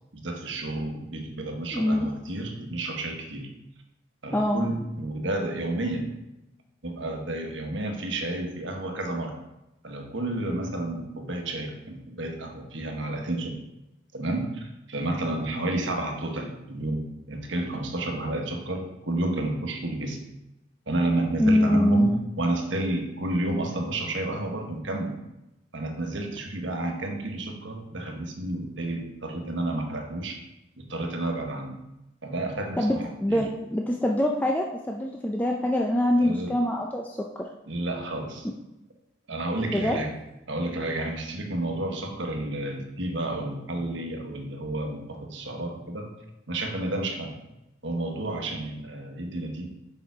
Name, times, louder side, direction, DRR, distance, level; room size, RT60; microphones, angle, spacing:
voice 1, 0.1-3.5 4.2-6.1 6.8-9.4 9.8-13.6 14.1-20.2 20.9-25.2 25.7-30.4 30.8-31.8 32.2-33.5 36.1-36.6 37.7-38.5 39.3-40.1 40.5-46.1 46.5-47.4 47.8-49.7, right 1 dB, 70° right, 3 dB, 1.3 m, -31 dB
voice 2, 1.7-2.1 4.3-4.7 21.4-22.2 32.8-33.0 33.2-37.2 39.7-40.0, left 1 dB, 10° left, 0 dB, 0.4 m, -24 dB
6.9 x 5.6 x 4.7 m, 0.93 s
head